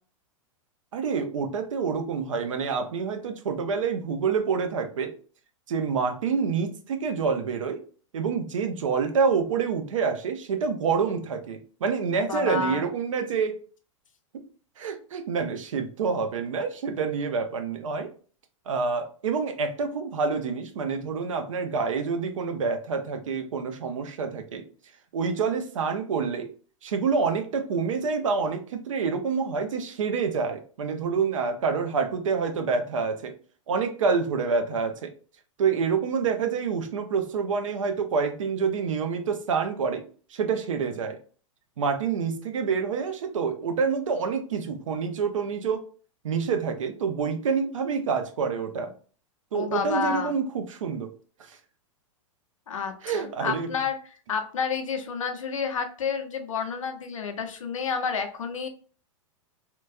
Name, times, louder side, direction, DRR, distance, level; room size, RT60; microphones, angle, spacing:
voice 1, 0.9-5.1 5.7-7.8 8.1-13.6 14.8-18.1 18.7-24.6 25.1-26.5 26.8-33.3 33.7-35.1 35.6-40.0 40.3-41.2 41.8-45.9 46.2-48.9 49.5-51.1 51.4-51.6 53.0-53.7, right 5 dB, 75° right, 7 dB, 0.6 m, -27 dB
voice 2, 12.1-12.8 49.5-50.3 52.7-54.0 54.3-58.7, left 6 dB, 80° left, 6 dB, 0.6 m, -30 dB
3.0 x 2.3 x 2.5 m, 0.40 s
hypercardioid pair, 105°, 17 cm